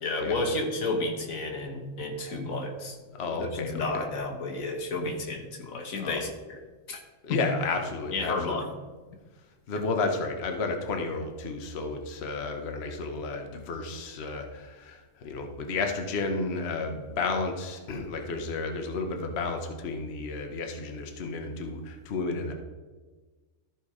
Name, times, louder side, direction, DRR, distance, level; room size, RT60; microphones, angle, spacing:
voice 1, 0.0-3.0 3.3-6.6 6.9-7.0 7.3-7.4 8.1-8.7, left 2 dB, 80° left, 2 dB, 1.6 m, -31 dB
voice 2, 3.1-4.0 6.0-6.2 7.2-8.6 9.7-22.5, left 3 dB, 55° left, 4 dB, 1.1 m, -32 dB
13.0 x 4.5 x 4.9 m, 1.3 s
omnidirectional pair, 1.4 m